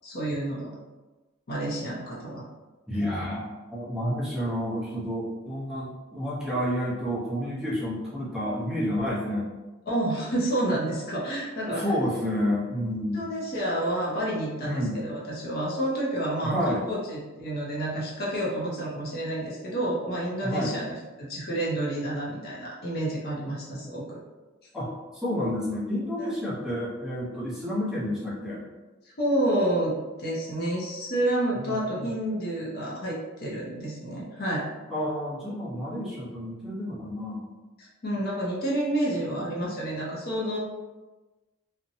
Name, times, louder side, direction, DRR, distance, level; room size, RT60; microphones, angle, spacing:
voice 1, 0.0-0.7 1.5-2.5 9.9-11.8 13.1-24.2 26.2-26.3 29.2-34.7 37.8-40.6, right 1 dB, 50° left, -5 dB, 0.6 m, -29 dB
voice 2, 2.9-9.5 11.7-13.3 14.6-15.0 16.4-16.9 20.4-20.7 24.7-28.6 31.5-32.1 34.9-37.4 39.2-39.5, equal, 5° right, -9 dB, 0.8 m, -30 dB
2.7 x 2.1 x 2.7 m, 1.2 s
head